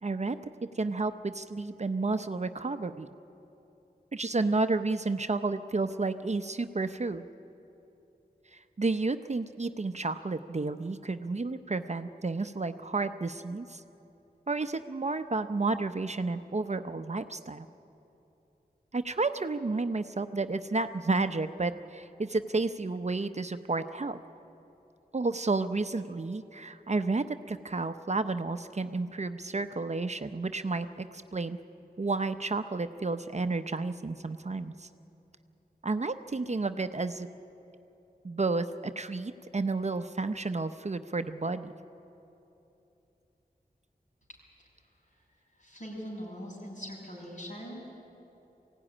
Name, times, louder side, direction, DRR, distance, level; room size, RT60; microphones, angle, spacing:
voice 1, 0.0-3.1 4.1-7.3 8.5-13.8 14.5-17.7 18.9-24.2 25.1-31.6 32.0-34.9 35.8-37.3 38.2-41.7, right 3 dB, 45° right, 9 dB, 0.7 m, -31 dB
voice 2, 44.8-47.9, equal, 50° left, -3 dB, 6.7 m, -43 dB
22.0 x 16.5 x 9.9 m, 2.9 s
wide cardioid pair, 70°, 16 cm